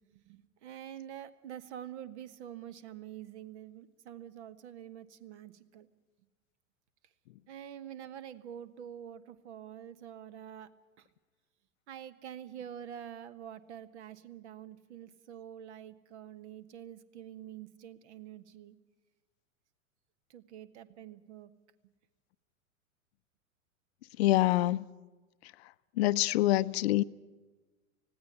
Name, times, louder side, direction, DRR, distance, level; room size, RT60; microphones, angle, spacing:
voice 1, 0.3-5.9 7.5-10.7 11.9-18.7 20.3-21.5, right 10 dB, 55° right, 1.4 m, -46 dB
voice 2, 24.2-24.8 26.0-27.0, left 16 dB, 50° left, 0.6 m, -25 dB
20.0 x 16.0 x 9.8 m
figure-of-eight pair, 100°, 41 cm